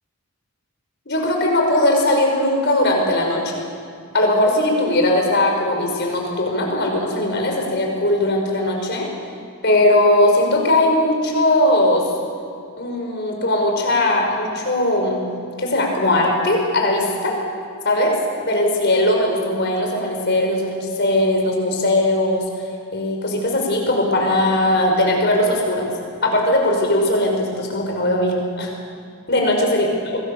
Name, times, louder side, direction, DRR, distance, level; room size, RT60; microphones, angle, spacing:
voice 1, 1.1-3.6 4.1-9.1 9.6-12.1 12.8-15.3 15.6-17.4 17.8-22.4 22.9-25.9 26.2-28.7 29.3-30.2, left 1 dB, 50° left, 1 dB, 5.5 m, -19 dB
26.5 x 21.5 x 6.8 m, 2.4 s
head